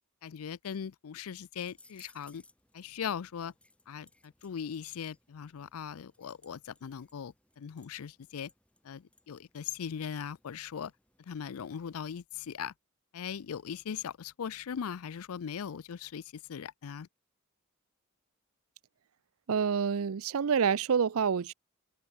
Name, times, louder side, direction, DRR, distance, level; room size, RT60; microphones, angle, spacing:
voice 1, 0.2-2.4 2.7-3.5 3.9-8.5 8.8-10.9 11.3-12.7 13.1-17.1, left 7 dB, 90° left, 0.5 m, -39 dB
sound 1, 1.6-12.0, left 2 dB, 5° left, 5.5 m, -65 dB
voice 2, 19.5-21.5, right 6 dB, 80° right, 0.5 m, -27 dB
open air
head